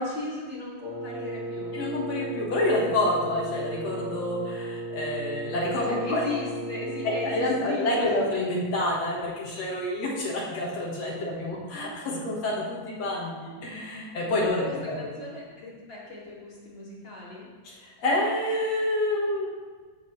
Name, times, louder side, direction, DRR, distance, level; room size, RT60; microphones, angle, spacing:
voice 1, 0.0-1.8 5.8-8.2 11.2-11.3 14.4-17.5, left 3 dB, 25° left, -6 dB, 1.4 m, -37 dB
Wind instrument woodwind instrument, 0.8-7.5, right 2 dB, 50° right, 2.7 m, -35 dB
voice 2, 1.7-6.2 7.0-15.1 17.6-19.5, left 1 dB, 55° left, -4 dB, 2.2 m, -28 dB
14.0 x 6.7 x 3.3 m, 1.5 s
omnidirectional pair, 4.6 m